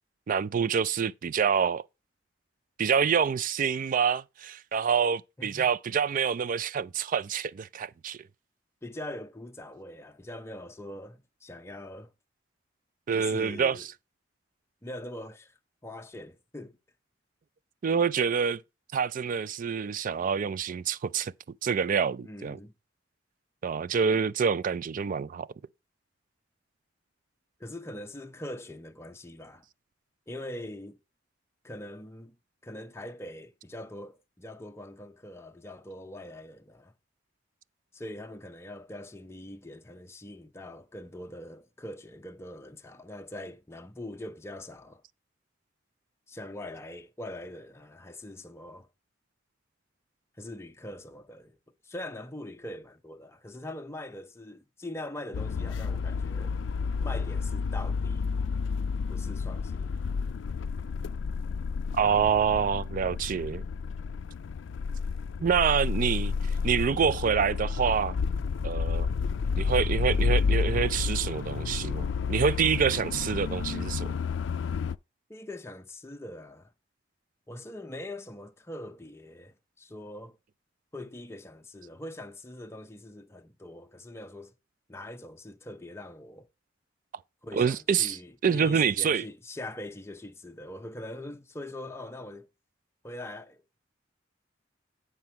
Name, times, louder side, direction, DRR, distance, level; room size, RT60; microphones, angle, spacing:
voice 1, 0.3-1.8 2.8-8.2 13.1-13.8 17.8-18.6 18.9-21.3 21.6-22.6 23.6-25.5 61.9-63.6 65.4-66.3 66.6-68.2 68.6-69.1 69.6-74.1 87.5-88.2 88.4-89.2, right 6 dB, 45° right, 0.4 m, -26 dB
voice 2, 8.8-12.1 13.1-13.9 14.8-15.5 15.8-16.8 22.2-22.7 27.6-29.6 30.3-31.0 31.6-32.4 32.6-36.9 37.9-45.0 46.3-48.9 50.4-51.6 51.8-56.6 57.0-58.3 59.1-60.0 75.3-76.7 77.5-80.4 80.9-84.5 84.9-86.5 87.4-92.5 93.0-93.8, left 1 dB, 15° left, 0.7 m, -42 dB
sound 1, 55.3-75.0, left 5 dB, 75° left, 0.4 m, -30 dB
9.5 x 4.1 x 5.8 m
head